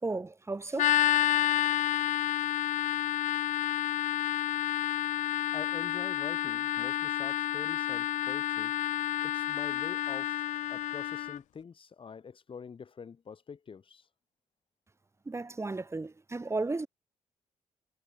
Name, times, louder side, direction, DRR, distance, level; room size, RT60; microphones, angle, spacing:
voice 1, 0.0-1.0 15.3-16.9, right 3 dB, 20° right, 3.5 m, -34 dB
sound 1, 0.8-11.4, left 12 dB, 80° left, 0.7 m, -30 dB
voice 2, 5.5-8.7 9.2-10.4 10.7-14.1, left 6 dB, 45° left, 2.1 m, -45 dB
cardioid pair, 95°, 13 cm